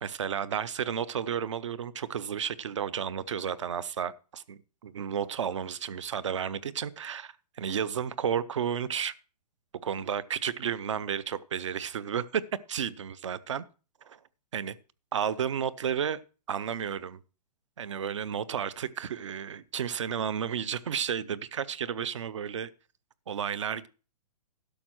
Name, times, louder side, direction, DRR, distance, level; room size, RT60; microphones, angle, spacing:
voice 1, 0.0-9.1 9.8-12.4 12.7-13.6 14.0-14.2 14.5-14.8 15.1-16.2 16.5-17.2 17.8-22.7 23.3-23.9, right 8 dB, 50° right, 0.6 m, -32 dB
12.0 x 6.2 x 6.1 m
hypercardioid pair, 180°, 21 cm